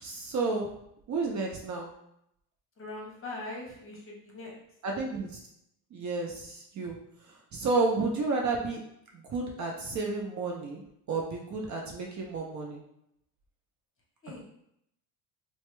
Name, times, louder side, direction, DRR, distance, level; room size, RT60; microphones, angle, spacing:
voice 1, 0.0-0.7 1.1-1.9 4.8-5.4 5.9-6.9 7.3-8.8 9.1-10.8 11.1-12.8, right 3 dB, 40° right, 0 dB, 0.6 m, -31 dB
voice 2, 2.8-4.6 14.2-14.5, left 2 dB, 30° left, -2 dB, 1.0 m, -41 dB
2.8 x 2.1 x 3.2 m, 0.75 s
hypercardioid pair, 75°, 46 cm